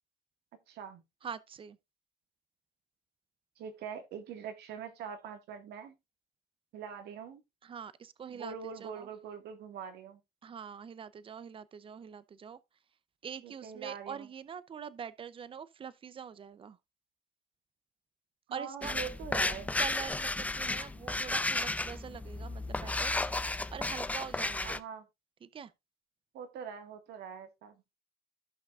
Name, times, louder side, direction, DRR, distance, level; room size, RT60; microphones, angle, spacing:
voice 1, 0.7-1.0 3.6-5.9 6.7-7.4 8.3-10.2 13.4-14.3 18.5-19.7 24.6-25.0 26.3-27.8, right 7 dB, 75° right, 1.9 m, -43 dB
voice 2, 1.2-1.8 7.6-8.5 8.8-9.1 10.4-12.6 13.2-16.8 18.5-18.9 19.8-24.8 25.4-25.7, right 7 dB, 30° right, 0.7 m, -44 dB
sound 1, 18.8-24.8, left 2 dB, 10° left, 0.5 m, -33 dB
15.5 x 5.8 x 2.5 m
cardioid pair, 110°, 17 cm